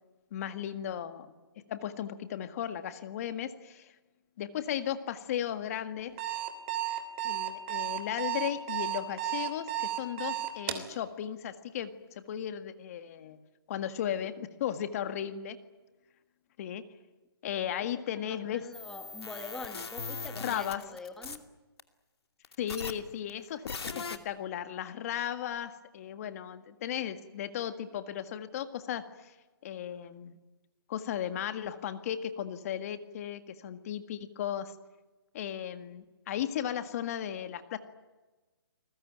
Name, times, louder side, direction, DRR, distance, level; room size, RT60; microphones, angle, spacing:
voice 1, 0.3-1.3 1.7-3.9 4.4-6.2 7.2-13.4 13.7-15.6 16.6-16.8 17.4-18.7 20.4-20.8 22.6-29.3 29.6-30.4 30.9-34.7 35.3-37.8, left 10 dB, 35° left, 9 dB, 1.8 m, -36 dB
Alarm, 6.0-10.9, right 13 dB, 30° right, 3.0 m, -33 dB
voice 2, 17.7-21.4, left 3 dB, 5° left, 6 dB, 1.2 m, -45 dB
sound 1, 18.7-21.4 21.8-21.9 22.4-22.9 23.3-23.4 23.7-24.2, left 4 dB, 85° left, 2.6 m, -39 dB
30.0 x 20.5 x 9.2 m, 1.2 s
hypercardioid pair, 150°, 13 cm